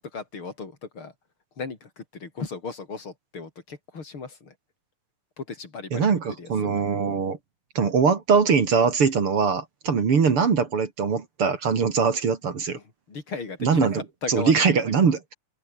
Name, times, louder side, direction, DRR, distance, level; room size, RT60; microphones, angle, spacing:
voice 1, 0.1-1.1 1.6-4.5 5.4-6.1 6.4-6.5 12.6-14.7, left 4 dB, 40° left, 4.4 m, -36 dB
voice 2, 5.9-7.4 7.7-12.8 13.6-15.3, right 5 dB, 45° right, 3.0 m, -22 dB
omnidirectional pair, 3.7 m